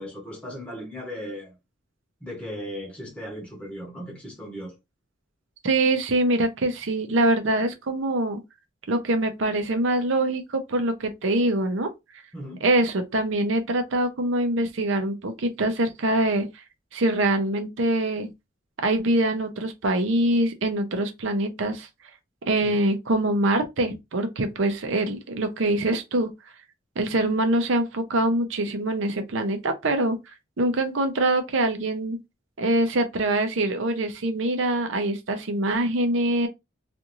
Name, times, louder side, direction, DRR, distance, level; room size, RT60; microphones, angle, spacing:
voice 1, 0.0-1.5 2.2-4.7 12.3-12.7 22.6-22.8, equal, 5° left, 0.7 m, -37 dB
voice 2, 5.6-8.4 8.9-11.9 12.6-16.5 16.9-18.3 18.8-21.9 22.5-26.3 27.0-30.2 30.6-32.2 32.6-36.5, right 1 dB, 75° right, 0.6 m, -24 dB
2.5 x 2.4 x 2.9 m
head